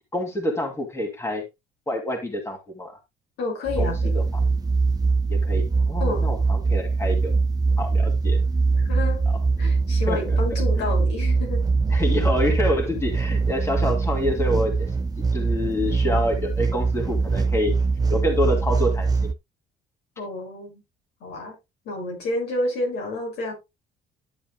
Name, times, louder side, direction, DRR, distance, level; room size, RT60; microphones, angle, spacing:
voice 1, 0.1-1.4 1.9-2.9 3.8-3.9 4.1-4.4 5.3-7.3 7.8-8.4 9.3-9.4 10.1-10.4 11.9-14.9 15.3-17.7 18.1-19.3, left 1 dB, 15° left, 2.2 m, -27 dB
voice 2, 3.4-4.1 6.0-6.4 8.8-9.2 9.6-11.6 20.2-20.8 21.2-21.5 21.9-23.5, left 2 dB, 85° left, 5.8 m, -29 dB
sound 1, 3.7-19.3, right 4 dB, 20° right, 0.6 m, -22 dB
11.5 x 7.0 x 2.2 m
cardioid pair, 110°, 17 cm